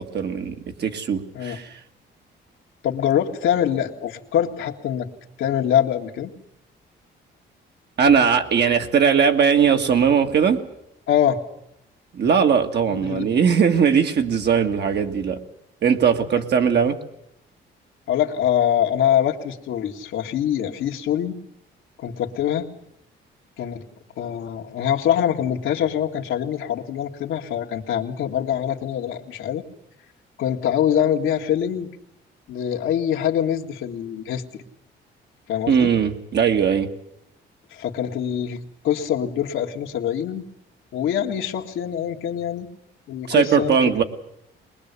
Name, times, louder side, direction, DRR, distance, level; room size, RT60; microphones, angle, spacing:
voice 1, 0.0-1.8 8.0-10.6 12.1-15.4 15.8-17.0 35.7-36.9 43.3-44.0, right 7 dB, 60° right, 5 dB, 2.1 m, -19 dB
voice 2, 2.8-5.1 5.4-6.3 11.1-11.4 12.9-13.4 16.2-16.3 18.1-21.4 22.0-22.7 23.6-23.8 24.2-29.6 30.4-31.9 32.5-34.6 35.5-35.9 37.7-40.5 40.9-42.7 43.1-44.0, left 10 dB, 80° left, 2 dB, 2.0 m, -24 dB
22.0 x 20.5 x 8.3 m, 0.78 s
cardioid pair, 90°, 20 cm